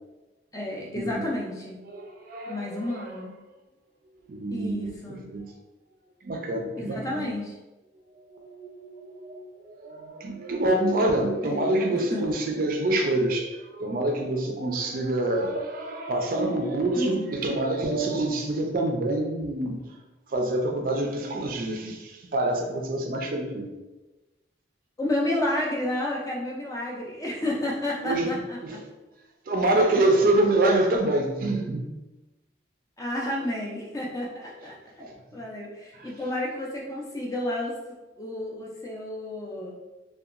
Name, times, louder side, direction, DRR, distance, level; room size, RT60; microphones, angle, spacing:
voice 1, 0.5-1.8 2.5-3.3 4.5-5.2 6.8-7.5 11.4-11.6 11.9-12.3 16.9-17.4 25.0-28.8 30.6-30.9 33.0-34.8 35.3-37.7 38.2-39.7, left 1 dB, 20° left, -3 dB, 0.4 m, -31 dB
voice 2, 1.9-3.2 4.3-4.9 5.3-5.5 6.2-7.2 8.1-19.8 20.3-23.7 28.0-28.9 29.5-31.9 35.0-35.2 36.0-36.1, right 1 dB, 50° right, 2 dB, 0.4 m, -26 dB
2.8 x 2.2 x 2.4 m, 1.1 s
head